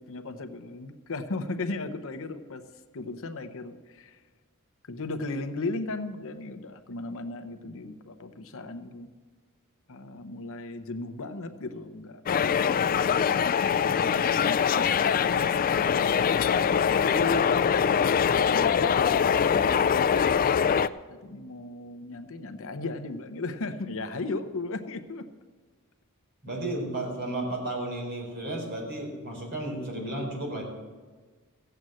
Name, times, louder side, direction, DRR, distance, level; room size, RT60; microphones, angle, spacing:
voice 1, 0.0-2.6 2.9-4.2 4.9-9.1 9.9-12.6 13.1-15.2 17.0-17.7 18.2-20.1 21.1-25.2, left 2 dB, 65° left, 9 dB, 0.8 m, -36 dB
sound 1, 12.3-20.9, left 7 dB, 40° left, 0.3 m, -23 dB
voice 2, 26.4-30.6, right 1 dB, 50° right, -1 dB, 4.4 m, -33 dB
15.5 x 8.0 x 7.7 m, 1.4 s
head